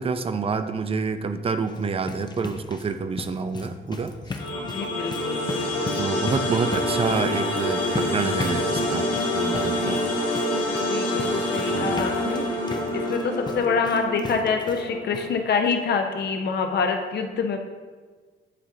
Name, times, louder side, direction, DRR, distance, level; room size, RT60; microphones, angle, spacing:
voice 1, 0.0-4.1 6.0-10.0 11.6-12.0, right 5 dB, 30° right, 10 dB, 0.4 m, -28 dB
sound 1, 1.7-14.9 15.1-15.3 15.7-15.8 16.1-16.2, left 3 dB, 20° left, 0.5 m, -37 dB
sound 2, 4.4-15.4, left 1 dB, 90° left, 1.4 m, -27 dB
voice 2, 4.6-6.0 9.7-10.1 10.9-12.4 12.9-17.6, left 5 dB, 55° left, 4 dB, 0.7 m, -26 dB
9.8 x 3.8 x 2.7 m, 1.4 s
cardioid pair, 90°, 20 cm